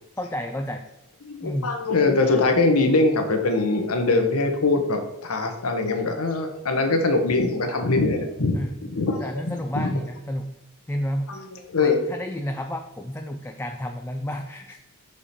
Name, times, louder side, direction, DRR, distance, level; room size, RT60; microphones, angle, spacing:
voice 1, 0.2-0.8 1.4-1.7 8.5-8.8 9.2-10.5 10.9-11.5 11.8-14.8, equal, 10° left, 4 dB, 0.4 m, -31 dB
voice 2, 1.2-9.9 11.3-12.0, left 3 dB, 90° left, 5 dB, 1.2 m, -23 dB
6.7 x 5.0 x 4.2 m, 0.98 s
head